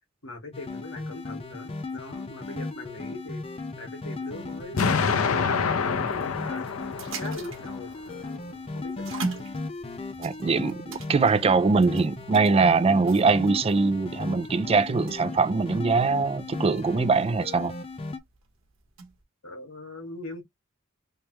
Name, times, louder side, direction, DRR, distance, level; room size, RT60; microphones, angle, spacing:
voice 1, 0.2-3.4 3.8-6.7 7.2-9.5 19.4-20.4, left 2 dB, 70° left, 1.8 m, -41 dB
sound 1, 0.5-18.2, left 3 dB, 30° left, 0.6 m, -36 dB
sound 2, 4.4-19.2, right 4 dB, 65° right, 1.1 m, -43 dB
Explosion, 4.8-7.8, left 5 dB, 90° left, 0.6 m, -26 dB
voice 2, 10.2-17.7, right 4 dB, 30° right, 0.3 m, -22 dB
3.5 x 3.0 x 2.9 m
head